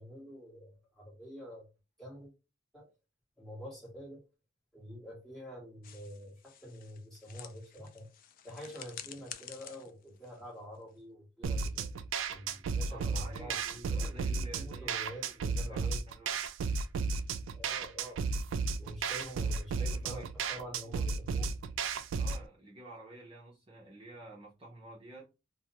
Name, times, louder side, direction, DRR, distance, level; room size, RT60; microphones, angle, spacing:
voice 1, 0.0-1.7 2.0-2.3 2.7-2.9 3.4-4.2 4.7-8.1 8.4-11.9 12.3-16.0 17.5-18.2 18.8-21.5, equal, ahead, 1.3 m, -47 dB
sound 1, 5.8-11.1, left 10 dB, 45° left, 0.3 m, -50 dB
sound 2, 11.4-22.4, right 4 dB, 75° right, 0.3 m, -34 dB
voice 2, 12.9-15.8 16.1-16.4 19.4-20.9 22.2-25.3, right 2 dB, 30° right, 0.7 m, -51 dB
2.5 x 2.1 x 2.8 m
head